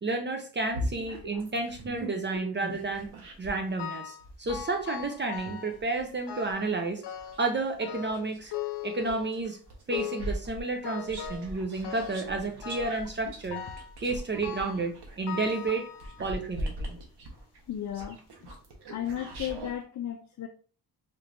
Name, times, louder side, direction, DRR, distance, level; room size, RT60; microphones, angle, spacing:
voice 1, 0.0-3.1 3.4-7.0 7.4-8.5 8.8-9.6 9.9-13.6 14.0-15.9 16.2-17.0, right 3 dB, 30° right, 5 dB, 0.5 m, -31 dB
sound 1, 0.7-3.7 4.2-8.6 9.1-19.7, right 1 dB, 75° right, 1.2 m, -40 dB
sound 2, 3.8-4.2 4.5-5.8 6.3-6.7 7.0-7.5 7.8-9.5 9.9-10.4 10.8-11.5 11.8-12.3 12.6-13.0 13.5-14.0 14.4-14.9 15.3-16.3 17.0-17.1 17.9-18.0 18.4-18.5, left 8 dB, 85° left, 0.7 m, -39 dB
voice 2, 17.7-18.2 18.9-20.5, left 10 dB, 45° left, 3 dB, 0.5 m, -34 dB
4.3 x 3.2 x 2.5 m, 0.40 s
wide cardioid pair, 145°, 40 cm